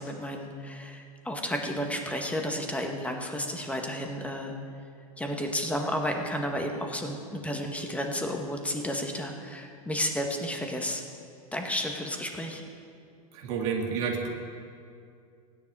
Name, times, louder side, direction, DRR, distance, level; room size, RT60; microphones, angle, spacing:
voice 1, 0.0-4.5 5.2-11.0 11.5-12.6, equal, 5° left, 2 dB, 1.8 m, -32 dB
voice 2, 13.3-14.3, right 6 dB, 60° right, 0 dB, 2.3 m, -30 dB
16.0 x 10.0 x 4.9 m, 2.3 s
hypercardioid pair, 100°, 19 cm